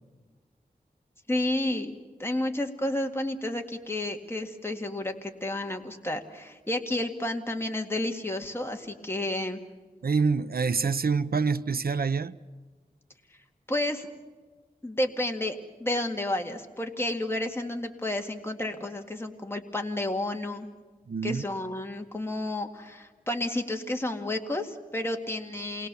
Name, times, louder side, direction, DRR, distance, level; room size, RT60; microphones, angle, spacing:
voice 1, 1.3-1.9 2.2-9.6 13.7-14.1 14.8-20.7 21.2-25.9, left 1 dB, 15° left, 2.1 m, -31 dB
voice 2, 10.0-12.3 21.1-21.4, right 5 dB, 75° right, 0.8 m, -26 dB
28.0 x 21.5 x 7.0 m
wide cardioid pair, 80°, 16 cm